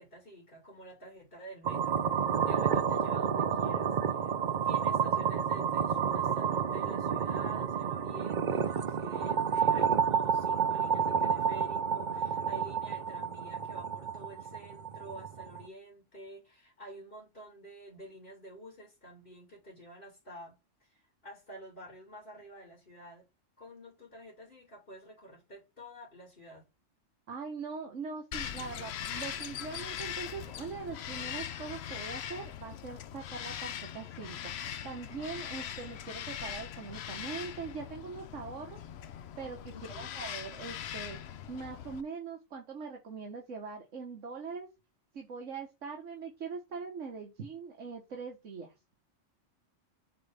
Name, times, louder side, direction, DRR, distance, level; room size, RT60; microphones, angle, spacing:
voice 1, 0.0-2.0 2.5-4.4 4.6-23.3 23.6-26.7 39.7-40.1, right 1 dB, 45° left, 2.6 m, -49 dB
sound 1, 1.6-15.7, right 7 dB, 50° right, 0.6 m, -30 dB
voice 2, 27.3-38.8 39.4-41.2 41.5-44.7 45.1-48.7, right 5 dB, 75° right, 1.6 m, -42 dB
Bird vocalization bird call bird song, 28.3-42.0, left 10 dB, 65° left, 0.8 m, -41 dB
7.8 x 4.0 x 3.4 m
omnidirectional pair, 1.3 m